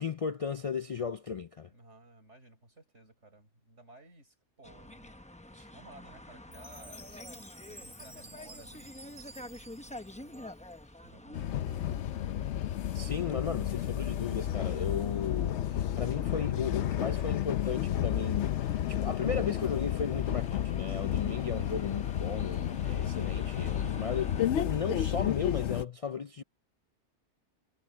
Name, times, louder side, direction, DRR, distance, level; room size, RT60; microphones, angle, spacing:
voice 1, 0.0-1.7 5.5-5.7 12.9-26.4, left 6 dB, 55° left, 0.4 m, -35 dB
voice 2, 1.7-5.1 5.7-12.2, right 2 dB, 85° right, 6.4 m, -57 dB
sound 1, 4.6-24.5, left 1 dB, 10° left, 0.6 m, -49 dB
Chime, 6.5-10.9, right 1 dB, 30° right, 2.5 m, -52 dB
sound 2, 11.3-25.8, left 11 dB, 80° left, 0.9 m, -32 dB
omnidirectional pair, 1.2 m